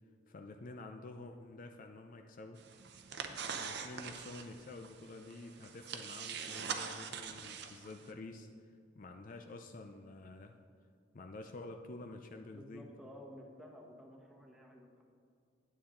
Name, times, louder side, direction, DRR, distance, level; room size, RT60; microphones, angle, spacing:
voice 1, 0.3-2.6 3.3-8.5 8.9-10.6 11.1-12.9, left 2 dB, 45° left, 5 dB, 0.5 m, -49 dB
sound 1, 2.6-8.1, right 6 dB, 60° right, 0.7 m, -44 dB
voice 2, 12.5-15.0, equal, 5° right, -1 dB, 1.2 m, -53 dB
9.3 x 8.6 x 3.8 m, 2.4 s
head